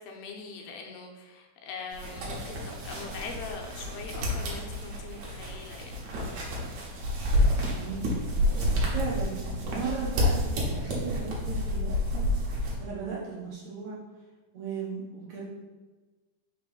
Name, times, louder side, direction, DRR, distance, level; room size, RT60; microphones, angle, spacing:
voice 1, 0.0-6.0, left 4 dB, 80° left, 1 dB, 2.4 m, -42 dB
sound 1, 1.9-12.8, left 1 dB, 65° right, 1.9 m, -29 dB
voice 2, 7.7-8.3 8.5-8.6 8.9-12.3 12.8-14.0 14.5-15.4, right 5 dB, 90° right, -6 dB, 1.5 m, -36 dB
5.9 x 3.0 x 5.4 m, 1.2 s
omnidirectional pair, 4.6 m